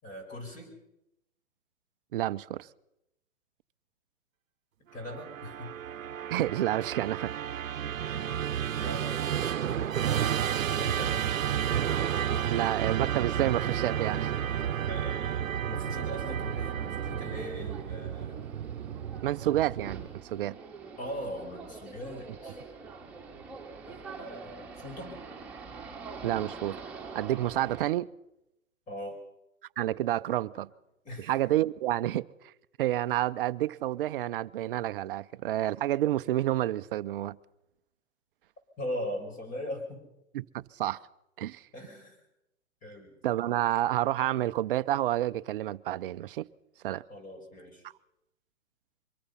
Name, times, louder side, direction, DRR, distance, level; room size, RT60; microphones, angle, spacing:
voice 1, 0.0-0.8 4.9-5.8 8.1-8.4 8.8-10.0 10.8-11.2 14.9-18.5 21.0-22.6 23.8-25.2 28.9-29.2 31.0-31.4 38.8-40.0 41.7-42.2 42.8-43.1 47.1-47.8, left 1 dB, 20° left, 6.3 m, -40 dB
voice 2, 2.1-2.7 6.3-7.3 8.0-8.2 12.5-14.3 19.2-20.6 26.2-26.8 27.1-28.1 29.8-30.7 31.2-32.5 32.8-37.4 40.3-41.0 41.4-41.7 43.2-46.5 46.8-47.0, right 13 dB, 40° right, 0.7 m, -29 dB
Musical instrument, 5.0-20.3, right 9 dB, 70° right, 1.0 m, -31 dB
sound 1, 16.4-27.9, right 4 dB, 5° right, 3.2 m, -45 dB
24.0 x 22.0 x 5.7 m
hypercardioid pair, 130°, 40 cm